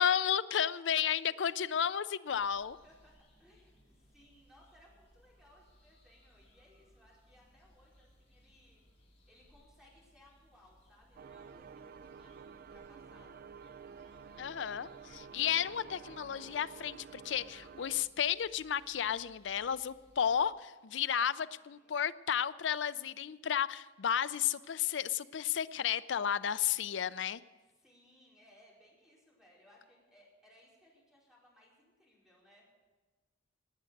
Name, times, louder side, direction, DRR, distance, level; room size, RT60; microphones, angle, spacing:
voice 1, 0.0-2.8 14.4-27.4, left 9 dB, 70° left, 16 dB, 0.5 m, -33 dB
sound 1, 2.3-20.5, equal, 35° left, 5.5 m, -65 dB
voice 2, 2.7-8.8 9.3-13.4 21.2-22.0 27.8-32.7, left 1 dB, 5° right, -5 dB, 4.7 m, -64 dB
sound 2, 11.2-18.1, right 6 dB, 50° right, 0.4 m, -51 dB
18.0 x 9.2 x 6.5 m, 1.3 s
head